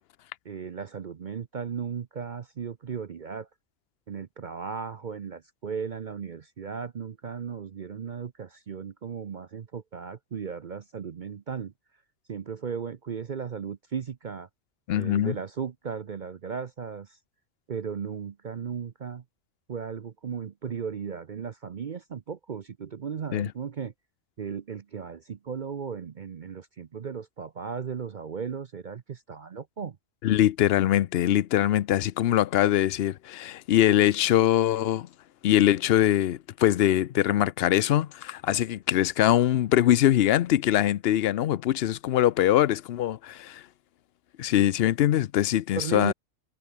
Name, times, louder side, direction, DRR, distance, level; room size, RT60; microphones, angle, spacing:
voice 1, 0.4-3.5 4.1-11.7 12.3-14.5 14.9-17.2 17.7-19.2 19.7-23.9 24.4-30.0 45.8-46.1, right 6 dB, 45° right, 0.6 m, -36 dB
voice 2, 14.9-15.3 23.3-23.5 30.2-35.1 35.4-43.6 44.4-46.1, left 12 dB, 60° left, 0.7 m, -23 dB
omnidirectional pair, 1.4 m